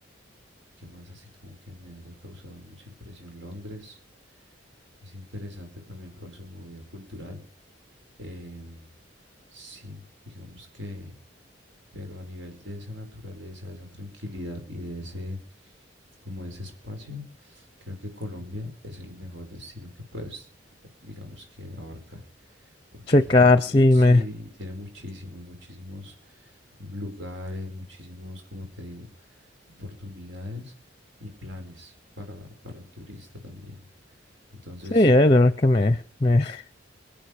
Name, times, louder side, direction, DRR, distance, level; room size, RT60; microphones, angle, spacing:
voice 1, 0.8-4.0 5.0-7.4 8.2-8.9 9.5-11.2 11.9-15.4 16.2-20.5 21.0-22.3 23.3-29.1 29.8-30.7 31.2-33.8 34.5-35.1, left 1 dB, 70° right, 4 dB, 5.7 m, -40 dB
voice 2, 23.1-24.2 34.9-36.0 36.2-36.6, left 2 dB, 25° left, 15 dB, 0.6 m, -17 dB
25.5 x 9.1 x 5.0 m, 0.39 s
head